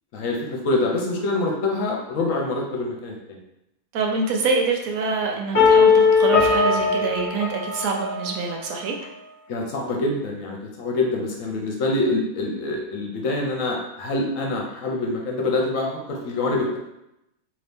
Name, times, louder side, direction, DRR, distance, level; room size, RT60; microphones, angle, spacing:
voice 1, 0.1-3.4 9.5-16.8, left 2 dB, 65° left, 0 dB, 0.9 m, -25 dB
voice 2, 3.9-9.0, right 4 dB, 75° right, 1 dB, 1.0 m, -25 dB
sound 1, 5.5-8.5, left 5 dB, 25° left, 1.2 m, -18 dB
2.9 x 2.7 x 3.4 m, 0.84 s
omnidirectional pair, 1.6 m